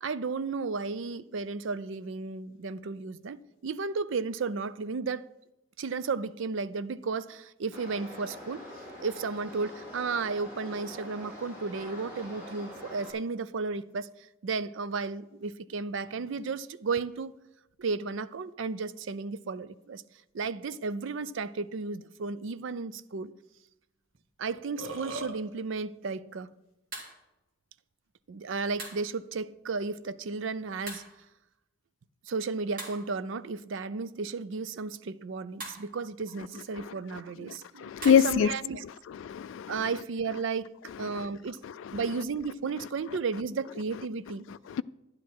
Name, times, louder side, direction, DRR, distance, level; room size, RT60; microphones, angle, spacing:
voice 1, 0.0-5.2 5.8-8.6 9.0-17.3 17.8-20.0 20.3-23.3 24.4-26.6 28.3-31.0 32.3-38.8 39.7-41.6 41.9-44.5, right 4 dB, 65° right, 0.5 m, -34 dB
sound 1, 7.7-13.1, left 1 dB, 10° right, 4.7 m, -44 dB
Burping eructation, 24.1-24.2 24.5-25.3, right 2 dB, 80° right, 1.3 m, -37 dB
sound 2, 24.9-25.1 26.9-27.2 28.8-29.1 30.9-31.2 32.8-33.3 35.6-35.9 38.0-38.3, right 2 dB, 45° right, 2.5 m, -42 dB
voice 2, 36.7-37.2 37.8-38.5 38.8-40.0 40.8-41.2 41.6-42.2 43.9-44.0 44.5-44.8, left 8 dB, 70° left, 0.3 m, -27 dB
11.5 x 10.5 x 4.6 m
head